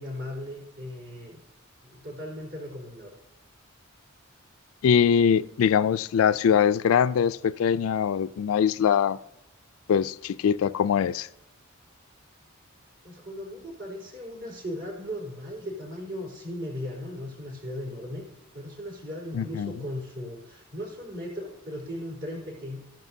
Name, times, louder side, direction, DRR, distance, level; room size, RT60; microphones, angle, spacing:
voice 1, 0.0-1.4 1.8-3.1 13.0-18.2 18.5-22.8, left 1 dB, 60° right, 4.0 m, -37 dB
voice 2, 4.8-9.2 9.9-11.3 19.3-19.7, left 7 dB, 75° left, 0.3 m, -22 dB
13.5 x 10.5 x 2.7 m
head